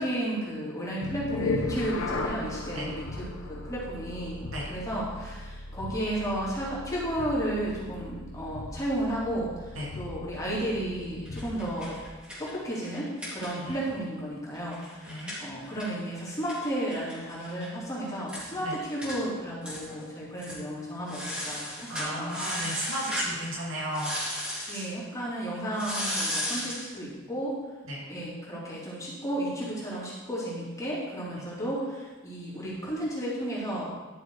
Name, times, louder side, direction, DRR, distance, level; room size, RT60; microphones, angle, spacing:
voice 1, 0.0-12.0 12.4-22.3 24.7-27.6 28.1-33.9, right 1 dB, 15° left, -7 dB, 3.3 m, -33 dB
sound 1, 1.0-12.1, left 2 dB, 90° left, 1.2 m, -37 dB
sound 2, 11.3-13.9 14.2-14.3 14.5-17.7 18.0-18.1 18.3-18.5 19.0-19.2 19.6-20.0 20.4-20.6 21.1-23.4 23.9-24.9 25.7-26.9, equal, 5° right, 3.0 m, -35 dB
voice 2, 21.9-24.2 24.7-24.9 27.9-28.0 31.4-31.5, right 1 dB, 70° right, -3 dB, 2.5 m, -34 dB
11.5 x 6.7 x 4.9 m, 1.2 s
head